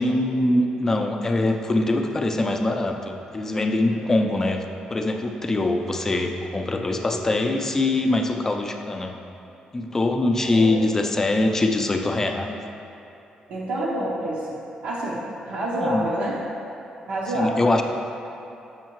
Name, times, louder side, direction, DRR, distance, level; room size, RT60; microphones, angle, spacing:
voice 1, 0.0-4.6 4.9-9.1 9.7-12.6 15.8-16.0 17.3-17.8, left 2 dB, 20° left, 4 dB, 0.4 m, -23 dB
voice 2, 10.4-10.7 13.5-16.3 17.1-17.6, right 1 dB, 85° right, -7 dB, 0.8 m, -28 dB
7.1 x 5.4 x 3.0 m, 2.9 s
cardioid pair, 150°, 2 cm